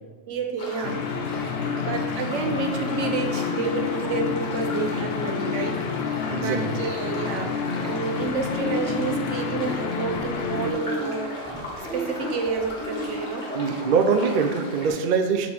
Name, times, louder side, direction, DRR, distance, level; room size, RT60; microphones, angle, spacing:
voice 1, 0.3-1.6 1.9-11.4 11.8-13.8, right 4 dB, 75° right, 4 dB, 1.1 m, -30 dB
sound 1, 0.6-14.9, left 1 dB, 40° left, 1.5 m, -37 dB
sound 2, 0.8-10.7, left 6 dB, 65° left, 0.7 m, -29 dB
voice 2, 6.3-6.8 13.5-15.5, right 5 dB, 55° right, 6 dB, 0.6 m, -23 dB
sound 3, 8.3-13.2, equal, 5° left, 1.0 m, -33 dB
7.3 x 4.3 x 4.2 m, 1.4 s
omnidirectional pair, 1.3 m